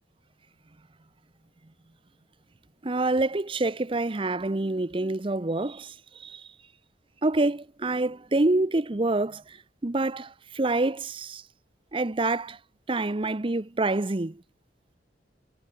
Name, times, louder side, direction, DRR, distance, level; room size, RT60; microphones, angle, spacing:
voice 1, 2.8-5.9 6.2-6.4 7.2-9.4 9.8-11.4 11.9-12.6 12.9-14.4, right 2 dB, 30° right, 0.7 m, -26 dB
head